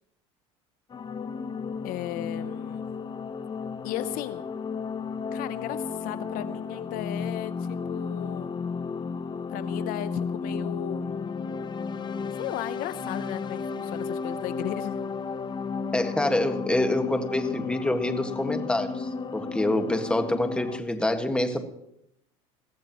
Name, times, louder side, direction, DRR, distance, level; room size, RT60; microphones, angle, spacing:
sound 1, 0.9-20.8, left 5 dB, 25° left, 0.8 m, -33 dB
voice 1, 1.8-2.8 3.8-4.5 5.3-8.5 9.5-11.2 12.3-15.0, left 14 dB, 60° left, 14 dB, 0.7 m, -35 dB
voice 2, 15.9-21.6, left 1 dB, 5° left, 6 dB, 1.7 m, -26 dB
22.0 x 15.5 x 3.1 m, 0.78 s
supercardioid pair, 100°, 16 cm